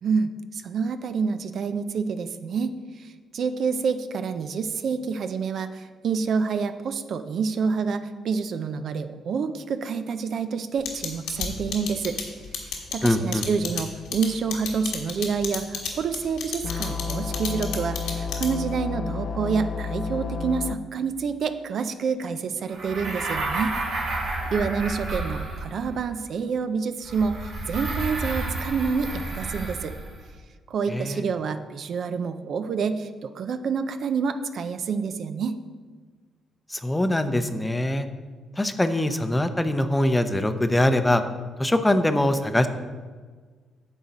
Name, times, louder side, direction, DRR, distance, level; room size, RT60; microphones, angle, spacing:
voice 1, 0.0-12.2 12.6-23.8 24.5-29.9 30.7-35.6, right 5 dB, 60° right, 10 dB, 0.5 m, -28 dB
sound 1, 10.9-18.8, left 7 dB, 85° left, 1.6 m, -31 dB
voice 2, 13.0-13.4 30.9-31.2 36.7-38.1 38.6-41.2 41.6-42.7, left 1 dB, 10° left, 8 dB, 0.7 m, -23 dB
sound 2, 16.6-20.7, left 5 dB, 55° left, 0.5 m, -31 dB
sound 3, 22.7-25.9 27.0-30.2, right 2 dB, 80° right, 2.9 m, -30 dB
9.9 x 6.5 x 4.1 m, 1.5 s
cardioid pair, 90°, 0 cm